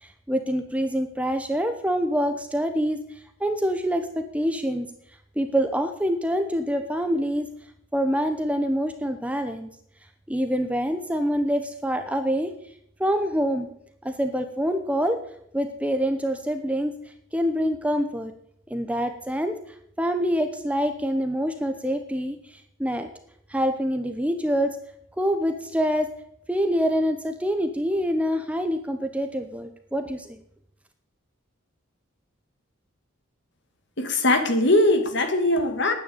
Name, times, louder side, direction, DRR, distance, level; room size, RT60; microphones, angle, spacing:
voice 1, 0.0-3.0 3.4-4.9 5.4-7.5 7.9-9.7 10.3-12.5 13.0-13.7 14.0-15.2 15.5-16.9 17.3-18.3 18.7-19.6 20.0-22.4 22.8-23.1 23.5-24.8 25.2-26.1 26.5-30.4, equal, 5° right, 7 dB, 0.9 m, -25 dB
voice 2, 34.0-35.9, left 2 dB, 55° left, 6 dB, 2.0 m, -21 dB
10.0 x 9.4 x 8.4 m, 0.70 s
head